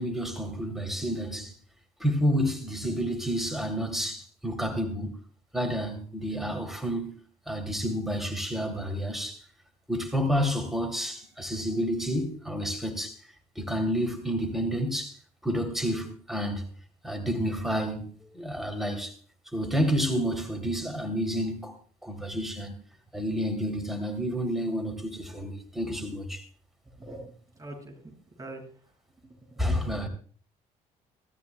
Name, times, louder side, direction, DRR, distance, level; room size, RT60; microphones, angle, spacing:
voice 1, 0.0-1.5 2.0-5.2 5.5-7.2 7.5-9.4 9.9-13.2 13.5-15.2 15.4-16.6 17.0-19.1 19.5-21.7 22.0-22.7 23.1-26.4 29.6-30.1, equal, ahead, 3.3 m, -30 dB
voice 2, 26.8-28.7 29.2-30.1, right 2 dB, 20° right, 7.6 m, -45 dB
19.0 x 13.5 x 2.3 m
hypercardioid pair, 55°, 17 cm